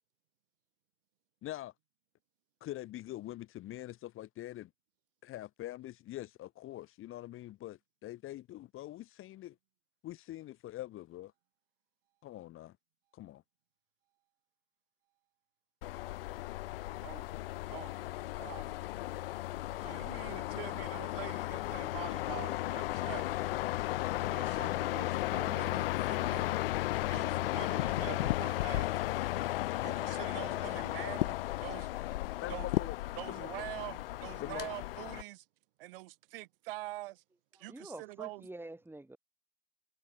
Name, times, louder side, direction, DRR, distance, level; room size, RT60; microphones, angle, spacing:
voice 1, 1.4-1.7 2.6-4.7 5.2-9.5 10.0-11.3 12.2-12.8 13.1-13.4 32.4-33.0 33.3-33.5 34.4-34.7, left 14 dB, 45° left, 1.5 m, -44 dB
sound 1, 15.8-35.2, left 16 dB, 70° left, 0.7 m, -35 dB
voice 2, 18.4-18.7 19.8-23.3 24.2-26.6 27.1-29.0 29.8-31.9 32.5-32.7 33.2-35.4 35.8-37.2 37.6-38.4, right 19 dB, 65° right, 1.8 m, -45 dB
voice 3, 37.6-39.2, right 1 dB, 5° right, 5.3 m, -47 dB
figure-of-eight pair, 70°, 30 cm